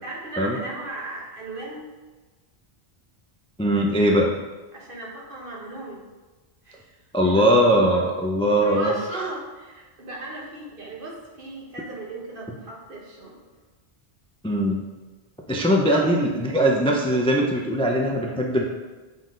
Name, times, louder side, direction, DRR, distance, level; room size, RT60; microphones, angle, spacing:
voice 1, 0.0-1.8 4.7-6.0 6.6-6.9 7.3-7.5 8.6-13.4 15.9-16.2, right 2 dB, 55° right, -3 dB, 1.5 m, -36 dB
voice 2, 3.6-4.3 7.1-9.2 14.4-14.8 15.5-18.6, equal, 10° left, 0 dB, 0.4 m, -20 dB
7.1 x 4.0 x 3.8 m, 1.3 s
omnidirectional pair, 1.1 m